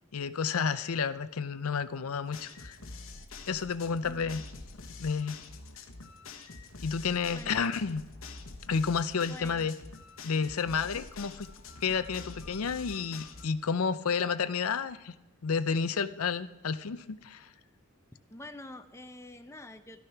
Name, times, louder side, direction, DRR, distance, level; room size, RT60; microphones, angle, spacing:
voice 1, 0.1-2.8 3.5-4.4 5.0-5.4 6.8-8.0 8.7-9.7 10.2-11.5 11.8-15.2 15.4-17.5, left 5 dB, 85° left, 13 dB, 0.6 m, -31 dB
sound 1, 2.3-13.5, left 3 dB, 70° left, 1.2 m, -46 dB
voice 2, 4.0-4.4 7.3-7.8 9.3-9.7 10.8-11.1 18.3-20.0, left 2 dB, 15° left, 8 dB, 0.7 m, -47 dB
12.5 x 12.5 x 5.8 m, 1.0 s
head